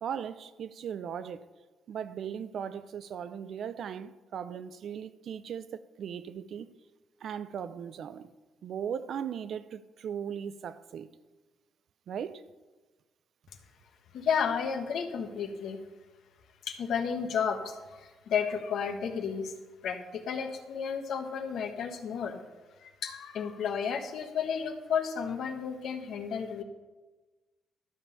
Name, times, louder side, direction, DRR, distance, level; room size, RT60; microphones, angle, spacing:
voice 1, 0.0-1.4 1.9-6.7 7.2-8.3 8.6-11.1 12.1-12.4, right 8 dB, 65° right, 0.5 m, -38 dB
voice 2, 14.1-15.8 16.6-19.5 19.8-22.4 22.8-26.6, left 7 dB, 70° left, 1.2 m, -32 dB
12.5 x 5.5 x 6.9 m
cardioid pair, 90°, 0 cm